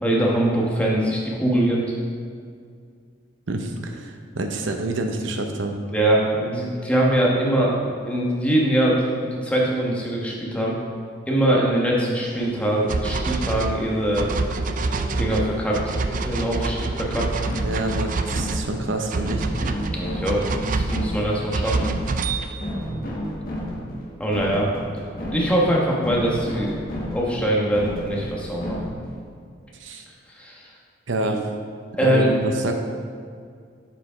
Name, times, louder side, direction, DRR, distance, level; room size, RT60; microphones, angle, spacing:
voice 1, 0.0-1.8 5.9-10.8 11.3-14.3 15.2-15.9 16.2-17.2 19.9-21.9 24.2-25.0 25.3-26.8 27.1-28.8 30.3-30.6 32.0-32.4, right 1 dB, 5° left, -4 dB, 1.3 m, -22 dB
voice 2, 3.5-5.8 17.5-19.5 29.8-30.1 31.1-31.4 32.0-32.7, right 2 dB, 70° right, 4 dB, 0.8 m, -27 dB
sound 1, 12.2-17.4, equal, 20° right, 1.7 m, -39 dB
sound 2, 12.9-22.7, right 3 dB, 45° right, 0.4 m, -27 dB
sound 3, 15.7-29.2, equal, 50° left, 1.4 m, -33 dB
7.1 x 5.0 x 5.0 m, 2.2 s
head